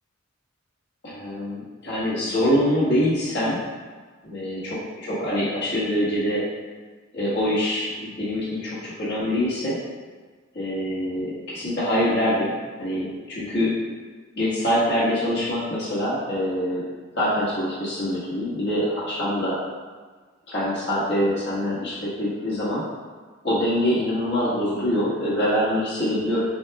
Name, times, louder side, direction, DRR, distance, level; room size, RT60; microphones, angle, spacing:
voice 1, 1.0-3.6 4.2-6.4 7.1-9.8 10.5-12.5 12.8-13.8 14.3-16.9 17.1-19.6 20.5-22.8 23.4-26.4, equal, 60° left, -9 dB, 1.3 m, -24 dB
6.1 x 2.4 x 2.2 m, 1.4 s
head